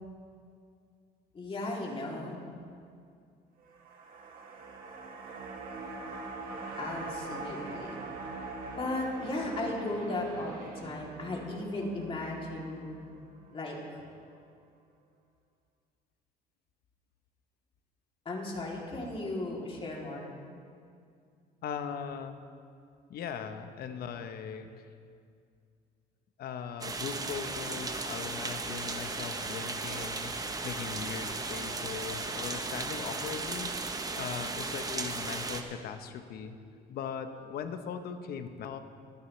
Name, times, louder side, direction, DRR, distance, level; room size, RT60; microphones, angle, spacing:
voice 1, 1.3-2.4 6.8-8.1 8.8-13.0 13.5-13.7 18.2-20.3, left 2 dB, 35° left, -3 dB, 3.0 m, -36 dB
sound 1, 3.6-14.0 14.4-14.5, right 3 dB, 60° right, 1.8 m, -43 dB
voice 2, 21.6-22.4 23.1-24.9 26.4-33.7 34.1-36.6 36.9-38.8, left 7 dB, 65° left, 8 dB, 1.0 m, -39 dB
sound 2, 26.8-35.6, right 3 dB, 20° right, 0.9 m, -36 dB
23.0 x 10.0 x 3.3 m, 2.3 s
cardioid pair, 110°, 17 cm